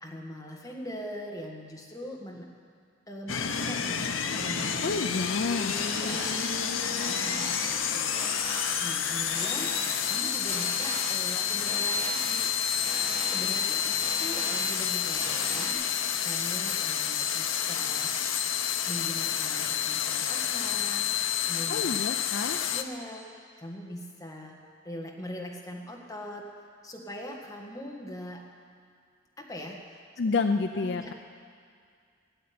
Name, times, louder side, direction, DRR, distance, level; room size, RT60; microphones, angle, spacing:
voice 1, 0.0-2.5 3.1-4.1 4.3-5.3 5.9-8.3 8.8-9.8 10.1-12.5 13.2-15.9 16.2-18.1 18.9-22.1 22.7-23.2 23.6-24.6 24.8-26.5 26.8-28.4 29.4-29.8 30.8-31.1, equal, 20° left, -1 dB, 1.7 m, -41 dB
sound 1, 3.3-22.8, left 8 dB, 85° left, 0.8 m, -29 dB
voice 2, 4.8-5.8 21.7-22.6 30.2-31.1, left 4 dB, 60° left, 7 dB, 0.5 m, -29 dB
sound 2, 5.7-15.7, right 2 dB, 30° right, 2.0 m, -40 dB
16.0 x 7.6 x 9.5 m, 2.2 s
head